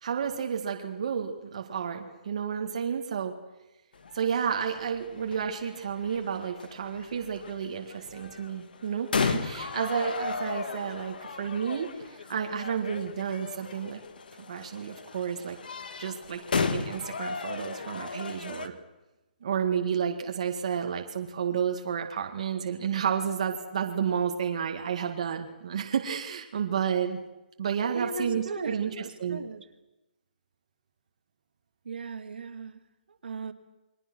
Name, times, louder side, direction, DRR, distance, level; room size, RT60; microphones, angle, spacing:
voice 1, 0.0-3.3 4.1-14.0 14.4-15.6 16.0-18.7 19.4-27.2 27.6-28.9 29.2-29.4, right 7 dB, 40° right, 1.9 m, -31 dB
sound 1, 4.0-18.7, left 5 dB, 65° left, 1.9 m, -35 dB
voice 2, 27.9-29.7 31.8-32.8 33.2-33.5, right 3 dB, 75° right, 2.4 m, -37 dB
29.0 x 22.5 x 6.2 m
hypercardioid pair, 180°, 5 cm